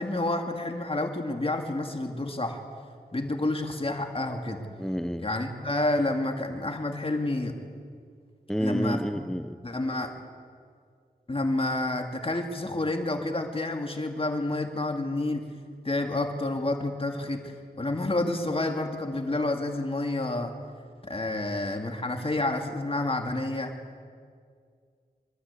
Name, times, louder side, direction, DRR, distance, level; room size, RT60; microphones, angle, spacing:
voice 1, 0.0-2.6 3.1-4.7 5.2-7.6 8.6-9.2 9.6-10.1 11.3-15.5 15.8-20.5 21.0-23.7, left 2 dB, 35° left, 4 dB, 2.3 m, -29 dB
voice 2, 4.8-5.3 8.5-9.6, equal, 5° left, 13 dB, 0.8 m, -29 dB
24.5 x 13.0 x 8.3 m, 2.1 s
cardioid pair, 55°, 16 cm